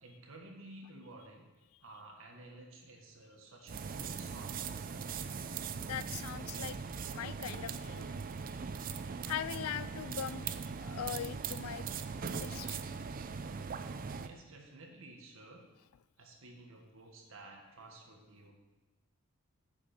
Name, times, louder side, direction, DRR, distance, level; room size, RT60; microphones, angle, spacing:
voice 1, 0.0-1.5 1.8-5.0 14.1-15.6 16.2-18.5, right 2 dB, 65° right, 1 dB, 1.7 m, -53 dB
sound 1, 3.7-14.3, right 5 dB, 40° right, 0.4 m, -40 dB
voice 2, 5.8-6.8 7.1-8.1 9.2-11.9 12.3-12.8, left 9 dB, 75° left, 16 dB, 0.4 m, -41 dB
10.5 x 7.3 x 4.4 m, 1.1 s
head